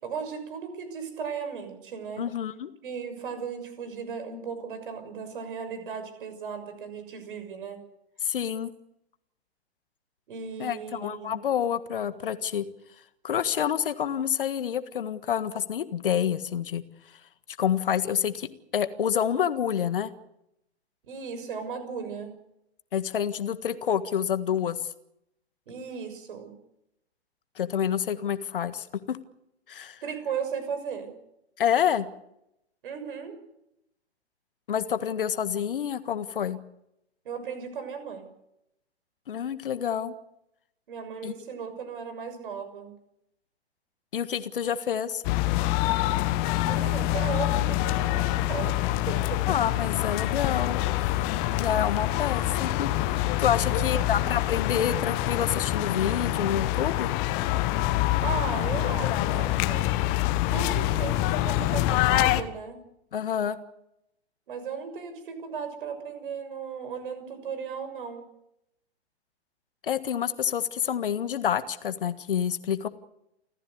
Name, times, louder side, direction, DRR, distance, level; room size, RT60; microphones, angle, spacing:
voice 1, 0.0-2.3 2.8-7.8 10.3-11.3 21.1-22.3 25.7-26.6 30.0-31.1 32.8-33.3 37.2-38.3 40.9-42.9 46.7-49.4 53.6-54.1 58.2-59.9 60.5-62.8 64.5-68.3, right 6 dB, 50° right, 9 dB, 6.5 m, -36 dB
voice 2, 2.2-2.7 8.2-8.7 10.6-12.7 13.2-16.8 17.6-20.1 22.9-24.8 27.6-29.2 29.7-30.0 31.6-32.1 34.7-36.6 39.3-40.1 41.2-41.3 44.1-45.2 49.5-50.8 51.6-57.1 63.1-63.6 69.8-72.9, left 9 dB, 55° left, 12 dB, 1.7 m, -28 dB
sound 1, 45.2-62.4, left 15 dB, 25° left, 1.3 m, -26 dB
29.5 x 14.5 x 8.4 m, 0.81 s
figure-of-eight pair, 115°, 33 cm